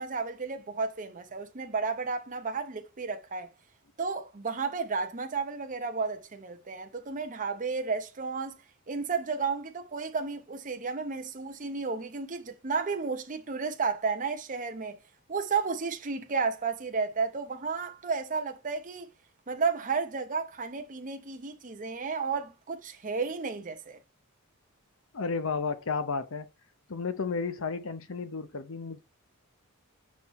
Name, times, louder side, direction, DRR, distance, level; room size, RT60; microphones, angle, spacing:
voice 1, 0.0-3.5 4.0-8.6 8.9-15.0 15.3-19.1 19.5-24.0, right 4 dB, 35° right, 0.8 m, -32 dB
voice 2, 25.1-26.5 26.9-29.0, left 4 dB, 65° left, 0.8 m, -32 dB
6.2 x 5.9 x 3.1 m
head